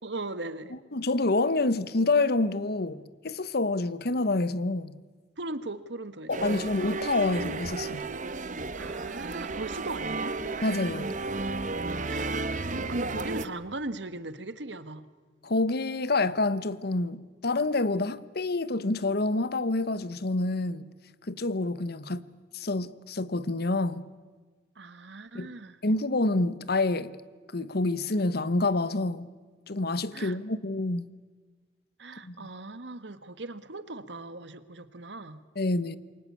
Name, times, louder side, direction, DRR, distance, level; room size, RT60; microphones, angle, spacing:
voice 1, 0.0-0.7 5.4-6.5 8.7-10.4 12.0-12.3 12.7-15.0 24.7-25.8 30.1-30.4 32.0-35.4, right 2 dB, 70° right, 1.5 m, -38 dB
voice 2, 0.9-4.9 6.3-8.1 10.6-11.1 15.4-20.9 21.3-22.3 22.5-24.0 25.3-25.5 25.8-27.1 27.5-29.3 29.7-31.1 32.2-32.5 35.6-36.0, left 2 dB, 60° left, 1.1 m, -27 dB
sound 1, 6.3-13.5, right 3 dB, 45° right, 1.2 m, -33 dB
28.0 x 23.0 x 8.5 m
head